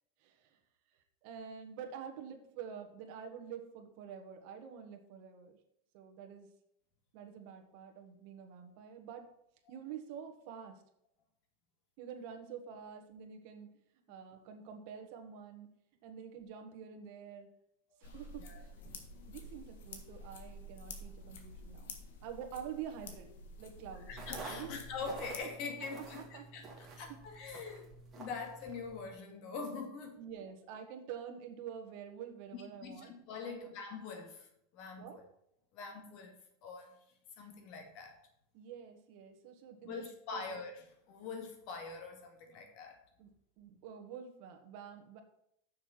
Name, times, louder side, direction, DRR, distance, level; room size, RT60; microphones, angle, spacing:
voice 1, 0.2-0.6 1.2-5.6 5.9-6.5 7.1-9.3 9.7-10.8 12.0-13.7 14.1-15.7 16.0-17.5 18.0-18.8 19.3-21.9 22.2-23.3 23.6-24.1 24.5-24.8 26.1-26.5 30.2-33.1 33.4-33.7 35.0-35.2 38.5-40.5 43.2-43.3 43.6-45.2, right 8 dB, 50° right, 1.5 m, -47 dB
sound 1, 18.0-25.4, left 2 dB, 85° left, 1.7 m, -49 dB
voice 2, 18.4-19.0 24.1-27.9 28.2-30.2 32.5-35.2 35.7-36.4 36.6-37.0 37.4-38.2 39.8-43.0, left 4 dB, 45° left, 2.1 m, -44 dB
sound 2, 24.1-29.1, right 3 dB, 15° right, 2.1 m, -50 dB
6.6 x 6.6 x 5.8 m
supercardioid pair, 155°, 0 cm